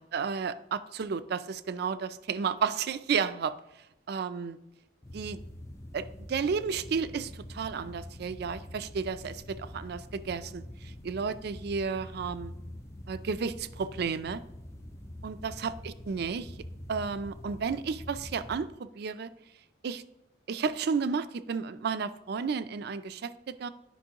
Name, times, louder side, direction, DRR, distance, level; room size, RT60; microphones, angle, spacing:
voice 1, 0.0-3.6 4.1-4.6 5.1-5.4 5.9-12.5 13.1-14.4 15.2-16.5 16.9-19.3 19.8-20.0 20.5-23.7, right 5 dB, 60° right, 13 dB, 0.4 m, -32 dB
sound 1, 5.0-18.7, left 1 dB, 15° left, 0.4 m, -45 dB
11.0 x 5.3 x 2.9 m, 0.85 s
head